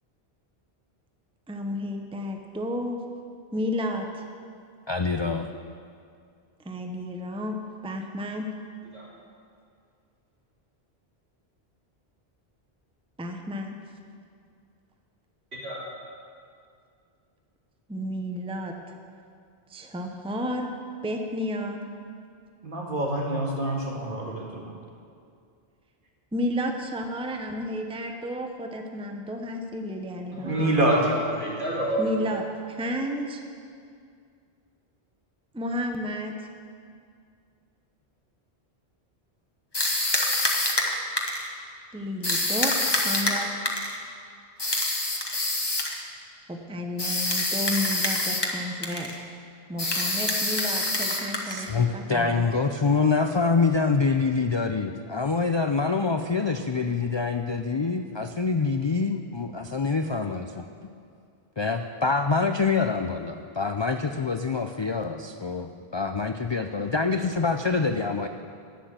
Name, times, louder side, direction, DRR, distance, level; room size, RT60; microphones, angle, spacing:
voice 1, 1.5-3.0 3.5-4.2 6.6-7.6 7.8-8.5 13.2-13.8 17.9-18.8 19.7-20.7 21.0-21.8 26.3-30.7 32.0-33.4 35.5-36.5 41.9-43.5 46.5-49.1 49.7-52.5, equal, 5° right, 3 dB, 0.8 m, -32 dB
voice 2, 4.9-5.5 51.5-60.6 61.6-68.3, left 4 dB, 45° left, 7 dB, 0.3 m, -25 dB
voice 3, 15.5-15.8 30.3-32.1, right 1 dB, 75° right, -6 dB, 3.7 m, -31 dB
voice 4, 22.6-24.6 30.4-31.0, right 1 dB, 55° right, -1 dB, 2.0 m, -26 dB
sound 1, 39.7-41.5 42.2-44.0 44.6-46.0 47.0-48.6 48.8-49.2 49.8-51.7, left 2 dB, 25° left, 1.3 m, -26 dB
11.5 x 9.3 x 7.5 m, 2.3 s
omnidirectional pair, 1.1 m